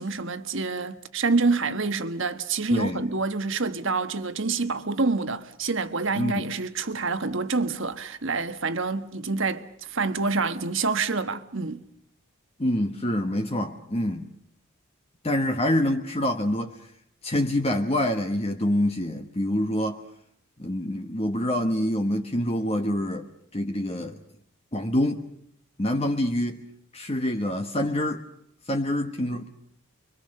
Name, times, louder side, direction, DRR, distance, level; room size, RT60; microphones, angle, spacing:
voice 1, 0.0-11.8, right 4 dB, 55° right, 1.4 m, -27 dB
voice 2, 2.7-3.1 6.1-6.5 12.6-14.3 15.2-16.8 17.2-20.0 20.6-23.3 23.5-24.2 24.7-25.3 25.8-26.6 26.9-28.3 28.7-29.5, left 1 dB, 25° left, 1.3 m, -26 dB
29.5 x 23.5 x 6.6 m
head